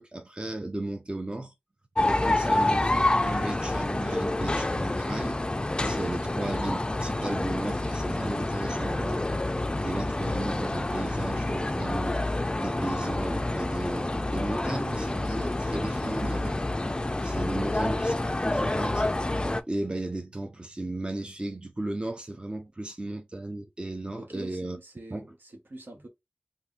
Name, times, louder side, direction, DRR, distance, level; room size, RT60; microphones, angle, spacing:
voice 1, 0.0-1.5 2.0-5.4 5.8-9.2 9.8-12.2 12.6-16.6 17.2-18.1 18.4-19.2 19.7-24.8 25.1-25.3, right 2 dB, 30° right, 0.6 m, -35 dB
sound 1, 2.0-19.6, left 2 dB, 25° left, 0.4 m, -28 dB
voice 2, 17.5-17.9 24.2-26.1, right 1 dB, 75° right, 1.1 m, -45 dB
2.6 x 2.6 x 3.5 m
wide cardioid pair, 65°, 3 cm